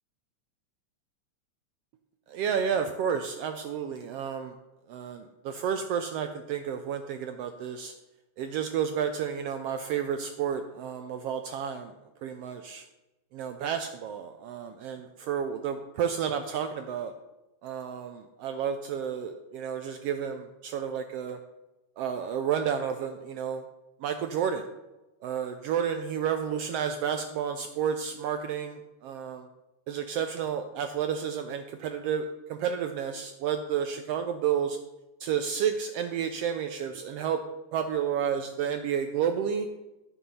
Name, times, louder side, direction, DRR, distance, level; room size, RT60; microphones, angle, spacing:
voice 1, 2.3-4.5 4.9-7.9 8.4-11.9 12.2-12.8 13.3-17.1 17.6-21.4 22.0-23.6 24.0-24.7 25.2-28.8 29.0-29.4 29.9-34.8 35.2-37.4 37.7-39.7, right 8 dB, 85° right, 7 dB, 1.3 m, -31 dB
12.5 x 5.6 x 5.5 m, 1.0 s
omnidirectional pair, 3.4 m